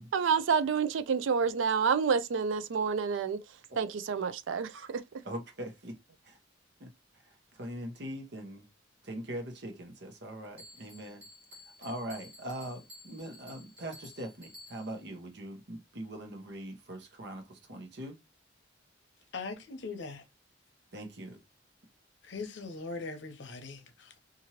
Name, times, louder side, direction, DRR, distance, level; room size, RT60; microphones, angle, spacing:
voice 1, 0.1-3.4 3.8-5.0, right 6 dB, 80° right, 0.4 m, -28 dB
voice 2, 5.2-6.0 6.2-6.4 6.8-8.7 9.0-11.2 11.5-18.2 20.9-21.4, right 1 dB, 60° right, 0.9 m, -42 dB
Bell, 10.6-15.1, left 1 dB, 30° right, 1.3 m, -53 dB
voice 3, 19.3-20.2 22.2-24.2, left 4 dB, 65° left, 0.7 m, -40 dB
2.9 x 2.6 x 2.9 m
head